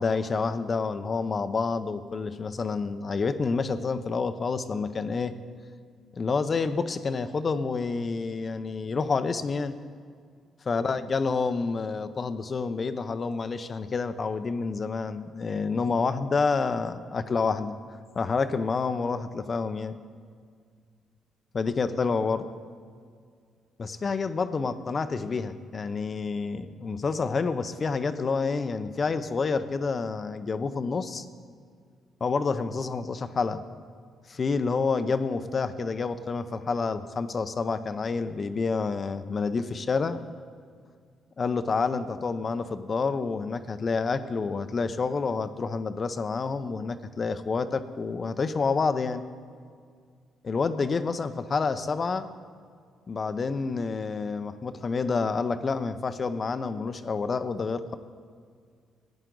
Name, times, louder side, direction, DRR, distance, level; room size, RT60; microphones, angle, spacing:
voice 1, 0.0-5.3 6.1-9.8 10.7-17.7 18.1-19.9 21.5-22.4 23.8-31.3 32.2-33.6 34.3-40.2 41.4-49.2 50.4-52.3 53.1-57.9, left 4 dB, 40° left, 11 dB, 0.7 m, -28 dB
16.0 x 9.8 x 3.9 m, 2.1 s
cardioid pair, 90°, 0 cm